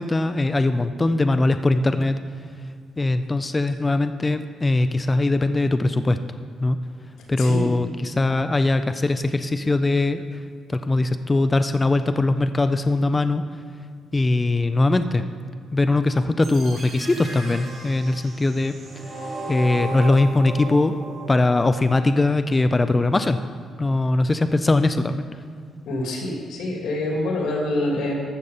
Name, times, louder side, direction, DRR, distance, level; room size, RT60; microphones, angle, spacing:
voice 1, 0.0-2.2 3.0-6.8 7.3-10.2 10.7-13.4 14.1-15.3 15.7-18.7 19.5-21.0 21.3-23.4 23.8-25.3, left 2 dB, 15° left, 10 dB, 0.4 m, -21 dB
voice 2, 7.4-7.7 25.8-28.1, left 1 dB, 90° left, -1 dB, 3.0 m, -26 dB
sound 1, 16.4-22.4, right 2 dB, 40° right, 2.3 m, -35 dB
14.0 x 6.7 x 5.5 m, 2.3 s
cardioid pair, 150°, 0 cm